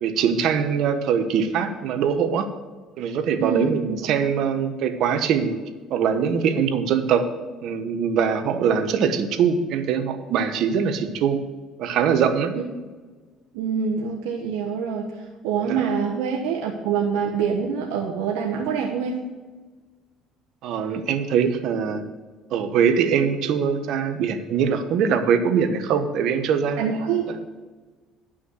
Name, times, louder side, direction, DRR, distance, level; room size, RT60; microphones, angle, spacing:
voice 1, 0.0-2.5 3.0-5.6 5.9-7.2 7.6-11.4 11.8-12.5 15.7-15.8 20.6-22.0 22.5-26.8, right 7 dB, 65° right, 8 dB, 1.1 m, -22 dB
voice 2, 3.4-4.1 12.5-12.6 13.5-19.2 26.8-27.4, right 6 dB, 90° right, -1 dB, 1.2 m, -26 dB
11.0 x 6.1 x 6.4 m, 1.3 s
cardioid pair, 110°, 0 cm